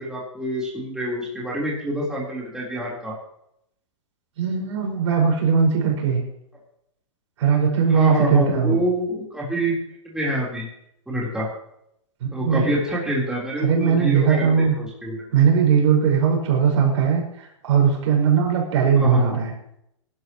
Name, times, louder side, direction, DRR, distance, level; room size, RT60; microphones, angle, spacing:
voice 1, 0.0-3.1 7.9-9.8 10.0-10.7 11.1-11.5 12.3-15.2 16.8-16.9 19.0-19.4, equal, 5° right, -5 dB, 3.9 m, -26 dB
voice 2, 4.4-6.2 7.4-8.8 12.2-12.7 13.6-14.7 15.3-19.5, right 6 dB, 65° right, 1 dB, 5.4 m, -19 dB
22.5 x 12.0 x 3.1 m, 0.76 s
hypercardioid pair, 135°, 17 cm